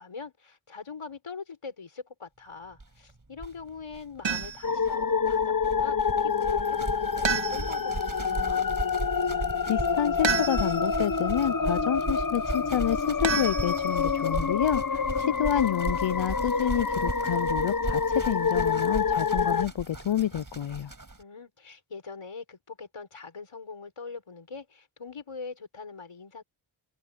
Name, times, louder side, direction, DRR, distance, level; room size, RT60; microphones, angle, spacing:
voice 1, 0.0-8.7 14.9-15.4 21.2-26.4, left 4 dB, 90° left, 6.1 m, -43 dB
sound 1, 2.8-2.9 3.1-3.2 3.4-21.2, right 2 dB, 40° right, 5.2 m, -37 dB
sound 2, 4.2-4.8 7.2-8.0 10.2-10.9 13.2-14.1, right 5 dB, 60° right, 1.7 m, -30 dB
sound 3, 4.6-19.7, left 5 dB, 40° left, 1.0 m, -27 dB
voice 2, 9.6-14.8 15.2-20.9, left 10 dB, 65° left, 0.6 m, -28 dB
wide cardioid pair, 45°, 49 cm